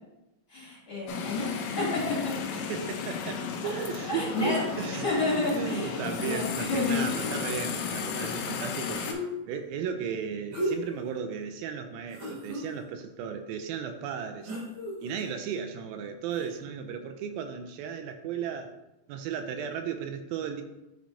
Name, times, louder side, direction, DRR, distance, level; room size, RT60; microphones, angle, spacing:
voice 1, 0.5-2.4 4.1-7.4, left 2 dB, 40° left, -8 dB, 3.1 m, -30 dB
sound 1, 1.1-9.1, left 6 dB, 85° left, 2.5 m, -34 dB
voice 2, 2.7-4.3 4.8-5.1 5.5-14.5 15.0-18.7 19.1-20.6, right 7 dB, 85° right, 6 dB, 2.4 m, -35 dB
sound 2, 4.3-4.9 6.6-6.7 6.8-7.8 8.9-9.6 10.5-11.0 11.5-11.6 12.1-12.6 14.4-15.3 16.3-16.5, equal, 55° right, 1.4 m, -35 dB
9.3 x 4.5 x 2.7 m, 0.94 s
omnidirectional pair, 4.1 m